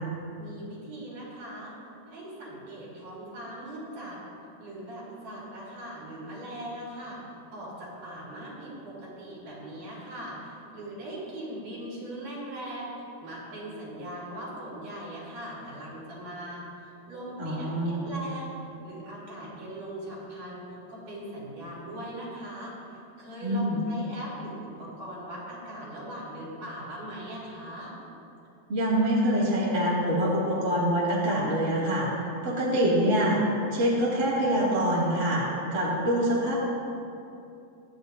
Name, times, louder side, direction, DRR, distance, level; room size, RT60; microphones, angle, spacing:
voice 1, 0.4-1.8 2.1-4.2 4.6-7.2 7.5-16.6 17.1-18.5 18.8-27.9, right 1 dB, 60° right, -7 dB, 4.8 m, -40 dB
voice 2, 17.4-18.1 23.4-23.8 28.7-32.1 32.4-33.4 33.7-36.5, equal, 25° right, -7 dB, 2.0 m, -25 dB
23.5 x 9.7 x 2.7 m, 2.7 s
omnidirectional pair, 4.3 m